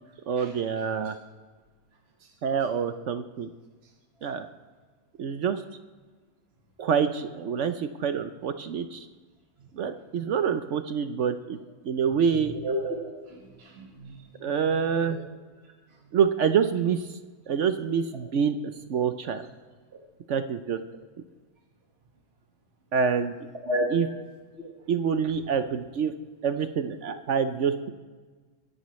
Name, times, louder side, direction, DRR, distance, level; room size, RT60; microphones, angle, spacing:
voice 1, 0.3-1.1 2.4-3.5 4.2-4.5 5.2-5.6 6.8-9.0 9.8-11.6 11.8-12.5 14.4-15.2 16.1-17.0 17.5-18.6 18.9-19.4 20.3-20.8 22.9-23.3 23.9-24.1 24.9-26.1 26.4-27.9, right 7 dB, 60° right, 9 dB, 0.8 m, -26 dB
voice 2, 12.6-13.0 13.3-14.2 14.5-14.6 15.1-15.2 23.7-23.9 24.5-24.7, equal, 40° right, -1 dB, 1.8 m, -31 dB
24.0 x 11.0 x 3.1 m, 1.4 s
omnidirectional pair, 1.8 m